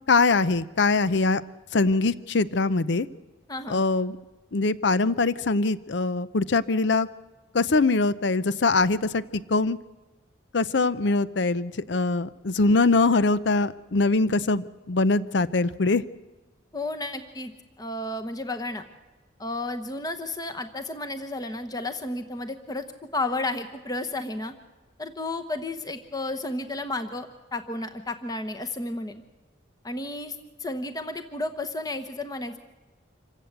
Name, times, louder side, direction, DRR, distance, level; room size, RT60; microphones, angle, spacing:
voice 1, 0.1-1.4 1.7-3.1 3.7-4.2 4.5-7.1 7.5-9.8 10.5-16.0, left 3 dB, 65° left, 16 dB, 0.7 m, -23 dB
voice 2, 3.5-3.8 16.7-18.8 19.4-22.9 23.1-24.5 25.0-29.2 29.8-32.6, left 2 dB, 20° left, 7 dB, 1.0 m, -32 dB
26.5 x 15.5 x 8.0 m, 1.2 s
head